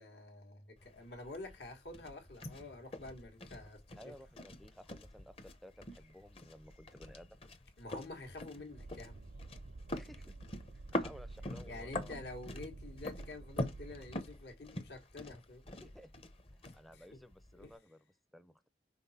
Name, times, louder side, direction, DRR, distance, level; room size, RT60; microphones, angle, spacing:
voice 1, 0.0-4.0 7.8-9.2 11.7-15.6 16.6-17.2 17.6-17.7, left 2 dB, 75° left, 1.6 m, -48 dB
sound 1, 0.8-17.8, left 1 dB, 35° left, 0.7 m, -45 dB
voice 2, 4.0-7.4 9.9-10.4 10.7-12.1 15.8-16.1 16.5-18.0 18.3-18.7, equal, ahead, 0.5 m, -56 dB
sound 2, 8.7-14.2, right 2 dB, 75° right, 0.6 m, -50 dB
5.8 x 3.9 x 4.2 m
head